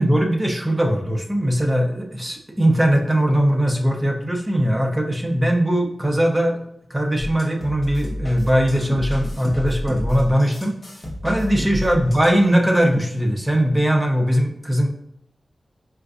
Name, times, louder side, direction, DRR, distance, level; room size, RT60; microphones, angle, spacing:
voice 1, 0.0-6.6 6.9-10.7 11.2-14.9, equal, 15° right, 2 dB, 0.5 m, -20 dB
sound 1, 7.2-12.4, left 1 dB, 35° left, 0.8 m, -30 dB
4.5 x 2.4 x 2.3 m, 0.74 s
wide cardioid pair, 120°, 0 cm